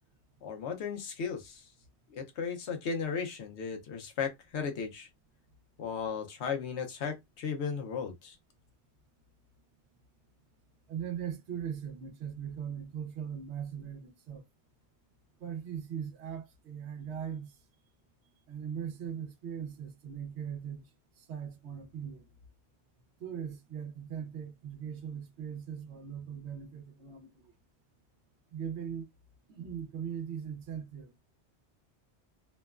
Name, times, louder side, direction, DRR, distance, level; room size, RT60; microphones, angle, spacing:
voice 1, 0.4-1.7 2.1-5.1 5.8-8.4, left 6 dB, 80° left, 1.0 m, -35 dB
voice 2, 10.9-14.4 15.4-17.6 18.5-20.9 21.2-22.3 23.2-27.5 28.5-29.1 29.5-31.2, right 8 dB, 80° right, 1.0 m, -40 dB
2.9 x 2.0 x 2.3 m
omnidirectional pair, 1.1 m